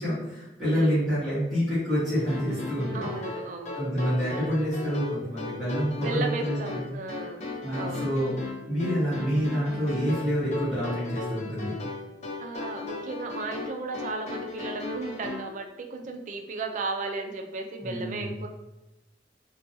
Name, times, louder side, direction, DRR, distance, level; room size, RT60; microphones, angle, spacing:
voice 1, 0.0-3.4 3.8-6.9 7.6-8.3 8.7-11.8 17.8-18.3, equal, ahead, -15 dB, 1.0 m, -27 dB
sound 1, 2.3-15.5, left 3 dB, 40° left, 0.5 m, -37 dB
voice 2, 2.9-3.8 6.0-7.4 7.7-8.1 12.4-18.5, right 3 dB, 45° right, 4 dB, 0.3 m, -35 dB
2.5 x 2.2 x 2.6 m, 0.96 s
head